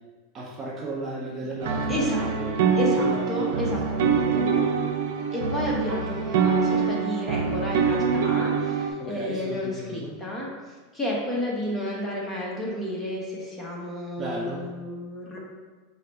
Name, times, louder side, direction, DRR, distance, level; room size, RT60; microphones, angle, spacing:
voice 1, 0.3-2.7 3.0-3.9 9.0-10.2 14.2-14.7, right 1 dB, 30° right, -3 dB, 0.8 m, -35 dB
sound 1, 1.6-8.9, right 5 dB, 75° right, 0.5 m, -24 dB
voice 2, 1.9-2.3 2.8-4.5 5.3-10.5 10.9-15.4, equal, 10° left, -4 dB, 1.1 m, -31 dB
4.7 x 2.2 x 4.2 m, 1.3 s
supercardioid pair, 120°, 0 cm